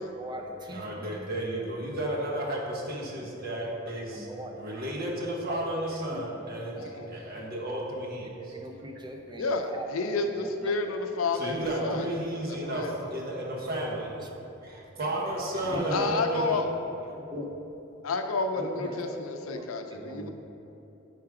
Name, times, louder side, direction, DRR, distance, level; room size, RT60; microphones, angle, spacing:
voice 1, 0.0-0.8 3.1-3.2 3.5-3.7 4.1-4.6 5.5-5.6 6.1-6.2 6.7-6.9 8.4-11.0 11.7-12.0 14.1-14.3 15.1-16.2 17.3-17.5 18.6-20.3, right 1 dB, 20° right, 2 dB, 0.5 m, -40 dB
voice 2, 0.7-4.3 4.6-8.3 11.3-14.1 14.6-16.6 17.1-17.2, right 1 dB, 50° right, -3 dB, 1.0 m, -33 dB
voice 3, 6.7-7.1 9.4-12.1 12.5-12.9 15.9-16.7 18.0-20.3, left 3 dB, 85° left, 5 dB, 0.5 m, -30 dB
5.0 x 4.7 x 4.8 m, 2.9 s
head